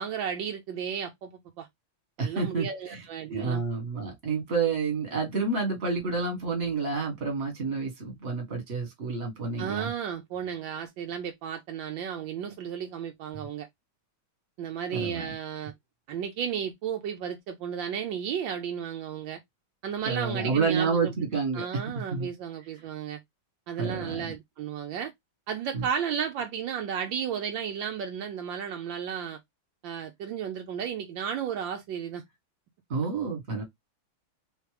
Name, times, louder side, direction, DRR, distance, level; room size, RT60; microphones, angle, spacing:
voice 1, 0.0-1.7 2.2-3.6 9.6-13.7 14.6-15.7 16.1-19.4 19.8-21.1 21.5-23.2 23.7-25.1 25.5-29.4 29.8-32.2, right 8 dB, 75° right, 1.3 m, -33 dB
voice 2, 2.2-3.0 3.3-9.9 13.3-13.4 14.9-15.3 20.0-21.6 22.1-22.3 23.8-24.3 25.7-25.8 32.9-33.6, right 4 dB, 35° right, 1.6 m, -29 dB
3.6 x 3.1 x 3.2 m
omnidirectional pair, 2.2 m